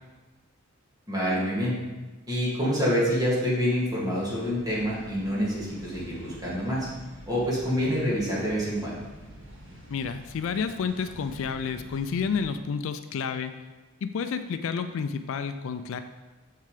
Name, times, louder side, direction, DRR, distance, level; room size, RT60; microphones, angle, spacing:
voice 1, 1.1-1.8 2.3-6.9 7.3-9.0, equal, 20° right, -8 dB, 2.3 m, -27 dB
sound 1, 4.0-12.5, equal, 60° right, 1.9 m, -47 dB
voice 2, 9.9-13.5 14.0-16.0, left 6 dB, 65° left, 9 dB, 0.4 m, -30 dB
6.9 x 6.5 x 3.3 m, 1.2 s
head